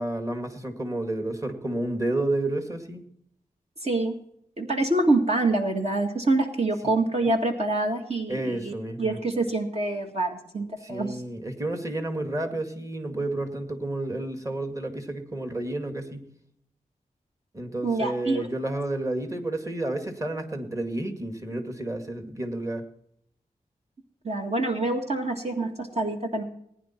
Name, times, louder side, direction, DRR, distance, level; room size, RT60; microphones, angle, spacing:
voice 1, 0.0-3.0 6.8-6.9 8.3-9.2 10.8-16.3 17.5-22.8, right 1 dB, 20° right, 5 dB, 2.1 m, -31 dB
voice 2, 3.8-4.2 4.6-11.2 17.8-18.5 24.2-26.4, right 2 dB, 45° right, 2 dB, 1.8 m, -26 dB
20.0 x 10.5 x 4.4 m, 0.71 s
wide cardioid pair, 75°, 15 cm